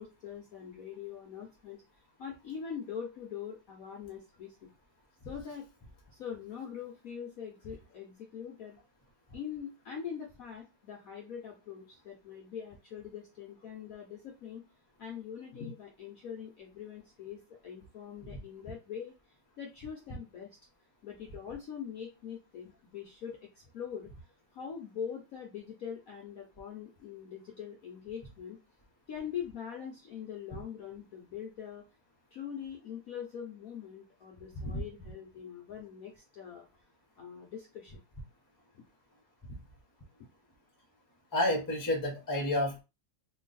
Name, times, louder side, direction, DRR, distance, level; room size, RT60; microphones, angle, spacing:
voice 1, 0.0-1.8 2.2-4.6 5.2-5.6 6.1-8.8 9.3-14.6 15.0-20.6 21.0-24.1 24.5-28.6 29.1-31.8 32.3-36.7 37.2-38.0 38.7-38.8, left 8 dB, 65° left, 1 dB, 0.8 m, -43 dB
voice 2, 41.3-42.8, left 1 dB, 20° left, 1 dB, 0.5 m, -30 dB
3.0 x 2.5 x 4.0 m, 0.28 s
omnidirectional pair, 2.1 m